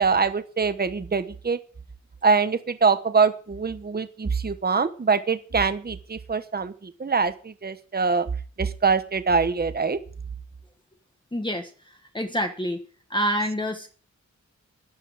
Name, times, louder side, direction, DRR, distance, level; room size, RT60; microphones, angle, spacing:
voice 1, 0.0-1.6 2.2-8.3 8.6-10.0, right 5 dB, 30° right, 11 dB, 1.1 m, -24 dB
voice 2, 11.3-11.7 12.1-12.8 13.1-13.9, equal, 15° left, 4 dB, 1.4 m, -26 dB
16.5 x 12.0 x 5.0 m, 0.41 s
wide cardioid pair, 125°, 30 cm